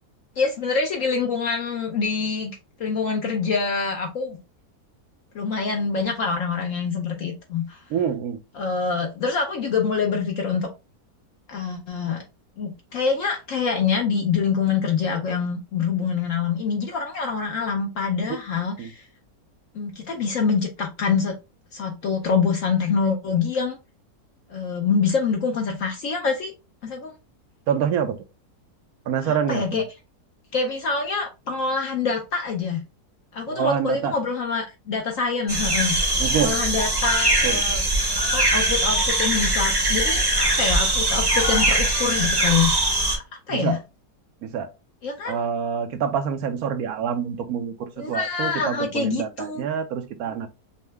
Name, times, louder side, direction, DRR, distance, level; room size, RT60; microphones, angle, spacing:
voice 1, 0.4-4.4 5.3-7.8 8.5-10.7 11.5-12.2 12.6-19.0 19.7-21.3 21.7-23.8 24.5-26.5 26.8-27.1 29.2-29.8 30.5-32.8 33.3-37.8 38.1-42.8 43.1-43.8 45.0-45.3 48.0-49.6, left 5 dB, 60° left, 1.0 m, -25 dB
voice 2, 7.9-8.4 18.3-18.4 18.8-18.9 27.7-28.2 29.1-29.8 33.5-34.1 36.2-36.5 37.4-37.6 43.5-43.8 44.4-44.7 45.3-50.5, right 8 dB, 75° right, 1.1 m, -26 dB
sound 1, 35.5-43.2, right 1 dB, 20° right, 0.7 m, -21 dB
5.5 x 2.1 x 3.3 m
omnidirectional pair, 1.7 m